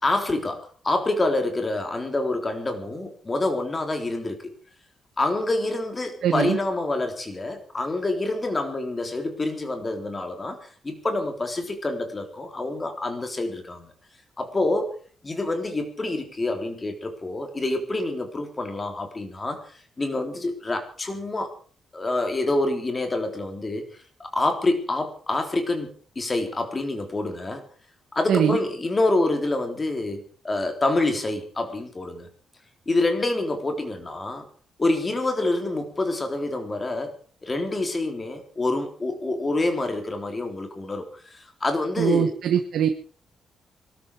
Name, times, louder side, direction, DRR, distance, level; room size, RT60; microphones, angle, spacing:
voice 1, 0.0-4.4 5.2-13.9 14.4-15.0 15.2-21.5 21.9-23.8 24.2-25.9 26.2-27.6 28.1-32.3 32.9-34.5 34.8-37.1 37.4-42.3, left 2 dB, 20° left, 5 dB, 3.7 m, -27 dB
voice 2, 6.2-6.6 28.3-28.6 42.0-43.1, right 9 dB, 70° right, 5 dB, 1.6 m, -22 dB
22.5 x 13.0 x 4.8 m, 0.43 s
cardioid pair, 145°, 0 cm